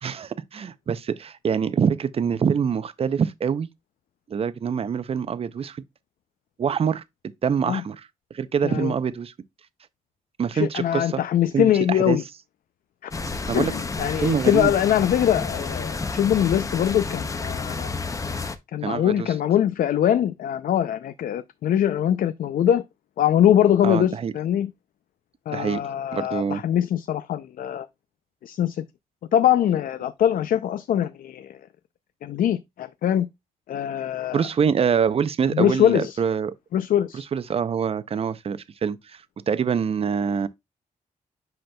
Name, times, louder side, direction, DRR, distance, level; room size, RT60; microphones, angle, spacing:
voice 1, 0.0-3.7 4.3-5.8 6.6-7.0 7.4-8.1 8.3-9.3 10.4-11.2 11.5-12.2 13.5-13.7 14.2-14.7 18.8-19.3 23.8-24.3 25.5-25.8 26.1-26.6 34.3-36.5 37.1-40.5, right 7 dB, 45° right, 0.5 m, -25 dB
voice 2, 8.6-8.9 10.5-12.2 13.0-13.1 13.5-17.9 18.7-22.8 23.2-24.7 25.5-27.9 28.4-28.8 29.3-31.6 32.2-33.3 33.7-34.4 35.5-36.2 36.7-37.3, left 10 dB, 80° left, 0.4 m, -22 dB
sound 1, 13.1-18.6, left 4 dB, 25° left, 0.6 m, -30 dB
7.7 x 5.7 x 2.2 m
wide cardioid pair, 140°, 14 cm